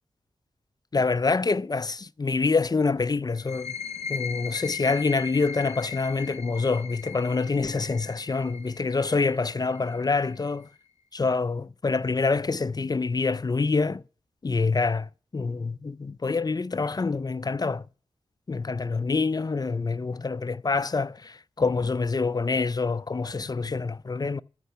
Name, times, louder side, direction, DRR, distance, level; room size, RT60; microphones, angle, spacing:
voice 1, 0.9-3.7 4.1-10.7 11.1-14.0 14.4-17.9 18.5-24.4, left 4 dB, 35° left, 0.5 m, -26 dB
sound 1, 3.4-10.8, left 6 dB, 75° left, 0.8 m, -39 dB
13.5 x 5.6 x 6.8 m
cardioid pair, 50°, 11 cm